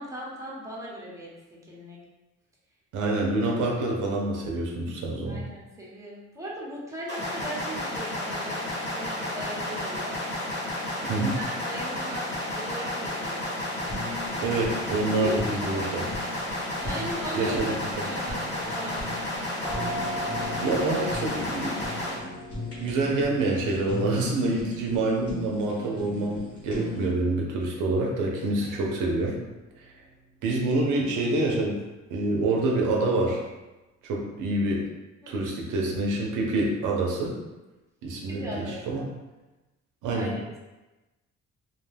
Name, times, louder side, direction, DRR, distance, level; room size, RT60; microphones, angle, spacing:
voice 1, 0.0-1.3 1.7-2.0 5.3-10.2 10.5-12.3 12.5-13.6 15.1-15.9 16.8-19.0 21.0-21.4 28.6-28.8 35.2-35.5 38.3-39.0 40.1-40.6, right 1 dB, 10° right, -5 dB, 0.8 m, -38 dB
voice 2, 2.9-5.4 11.1-11.4 14.4-16.1 17.3-17.7 20.6-21.8 22.2-22.3 22.8-29.4 30.4-31.8 32.1-33.4 34.0-34.9 35.3-37.4 38.0-39.0 40.0-40.3, right 2 dB, 85° right, -1 dB, 0.6 m, -26 dB
sound 1, 7.1-22.1, left 1 dB, 35° left, 1.0 m, -32 dB
Fire, 13.8-27.1, left 2 dB, 50° left, 1.2 m, -39 dB
sound 2, 19.6-31.1, equal, 5° left, 0.4 m, -42 dB
2.4 x 2.2 x 3.2 m, 1.1 s
cardioid pair, 90°, 30 cm